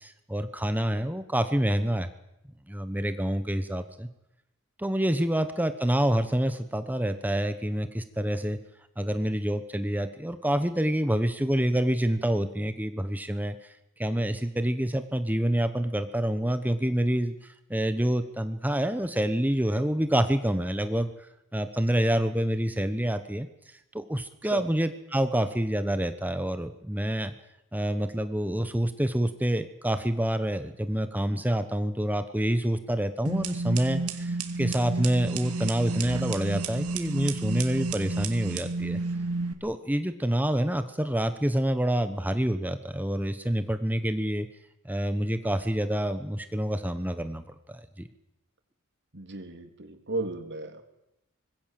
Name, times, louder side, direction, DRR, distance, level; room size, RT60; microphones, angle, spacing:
voice 1, 0.0-2.1 2.7-4.1 4.8-8.6 9.0-27.3 27.7-39.0 39.6-44.5 44.8-48.1, right 1 dB, 10° right, 10 dB, 1.1 m, -27 dB
sound 1, 33.3-39.5, right 3 dB, 75° right, 2.6 m, -31 dB
voice 2, 49.1-50.8, right 2 dB, 55° right, 6 dB, 3.5 m, -35 dB
26.0 x 21.0 x 7.7 m, 0.87 s
head